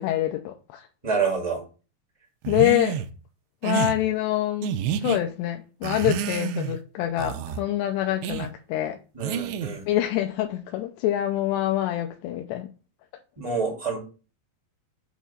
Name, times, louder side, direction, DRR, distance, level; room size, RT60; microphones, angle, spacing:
voice 1, 0.0-0.9 2.5-3.0 3.6-4.8 5.0-9.0 9.9-12.7, left 13 dB, 85° left, 2.7 m, -25 dB
voice 2, 1.0-1.6 9.1-9.8 13.4-14.0, right 5 dB, 25° right, 0.7 m, -27 dB
sound 1, 2.4-3.1 3.6-4.0 4.6-5.2 5.8-6.8 7.2-7.6 8.2-8.5 9.2-9.8, right 9 dB, 85° right, 2.8 m, -29 dB
8.3 x 3.0 x 5.6 m
omnidirectional pair, 4.9 m